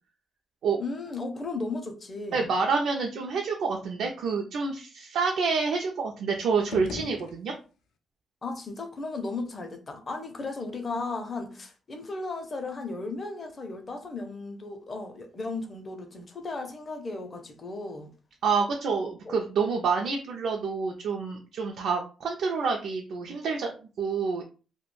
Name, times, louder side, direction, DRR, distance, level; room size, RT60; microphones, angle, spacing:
voice 1, 0.8-2.5 8.4-18.1 19.3-19.4, left 3 dB, 30° left, 0.5 m, -35 dB
voice 2, 2.3-7.5 18.4-24.4, right 5 dB, 70° right, 0.4 m, -28 dB
sound 1, 6.5-8.0, left 6 dB, 85° left, 0.4 m, -41 dB
2.3 x 2.1 x 3.0 m
cardioid pair, 155°, 0 cm